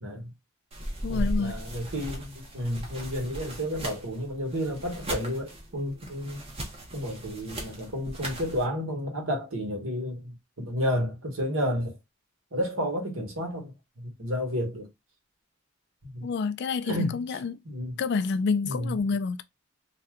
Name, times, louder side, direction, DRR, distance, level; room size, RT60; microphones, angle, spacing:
voice 1, 0.0-0.3 1.1-6.4 6.9-11.9 12.5-14.9 16.0-16.3 16.8-17.2 17.6-18.0 18.6-19.0, equal, 75° right, 1.3 m, -31 dB
sound 1, 0.7-8.7, equal, 30° right, 0.8 m, -37 dB
voice 2, 1.0-1.6 16.2-17.6 18.0-19.4, left 5 dB, 55° left, 0.3 m, -28 dB
2.7 x 2.2 x 3.5 m
head